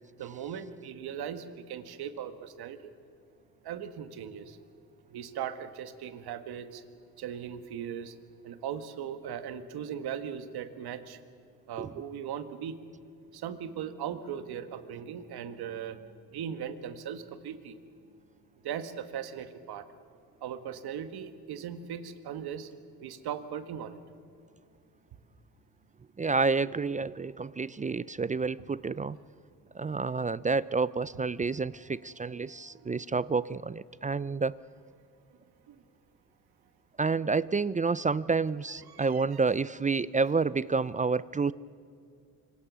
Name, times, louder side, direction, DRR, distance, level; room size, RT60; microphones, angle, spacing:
voice 1, 0.2-2.8 3.6-4.6 5.1-6.8 7.2-8.1 8.4-11.2 11.7-12.8 13.3-17.8 18.6-19.9 20.4-22.7 23.0-24.0 32.7-33.0 35.7-35.8 38.9-39.2, right 8 dB, 75° right, 10 dB, 1.6 m, -38 dB
voice 2, 26.2-29.2 29.7-34.6 37.0-41.5, right 4 dB, 20° right, 18 dB, 0.5 m, -29 dB
25.5 x 23.5 x 6.3 m, 2.4 s
supercardioid pair, 70°, 38 cm